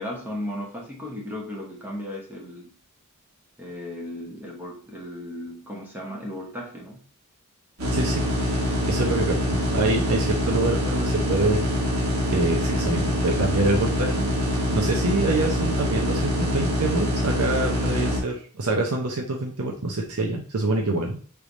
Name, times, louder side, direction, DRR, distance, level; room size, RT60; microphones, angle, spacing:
voice 1, 0.0-2.7 3.6-7.0, left 1 dB, 10° right, -1 dB, 1.0 m, -35 dB
sound 1, 7.8-18.2, equal, 65° right, 1.7 m, -24 dB
voice 2, 7.9-8.2 8.9-9.4 9.7-11.6 12.3-14.3 14.7-21.2, right 2 dB, 90° right, 1 dB, 0.8 m, -25 dB
3.4 x 3.3 x 4.0 m, 0.43 s
head